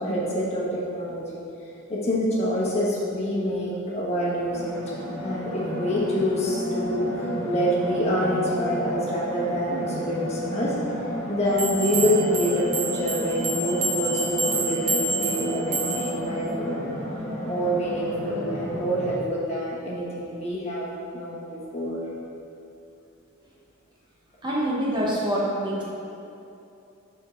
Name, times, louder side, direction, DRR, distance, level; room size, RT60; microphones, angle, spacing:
voice 1, 0.0-1.4 1.9-4.7 5.2-16.9 17.4-20.9 21.1-22.0, equal, 30° left, -6 dB, 1.1 m, -26 dB
sound 1, 4.5-19.2, equal, 10° left, 1.2 m, -32 dB
sound 2, 11.6-16.2, right 3 dB, 80° right, 0.9 m, -28 dB
voice 2, 24.4-25.8, equal, 20° right, -5 dB, 0.8 m, -25 dB
5.1 x 3.7 x 4.9 m, 2.8 s
head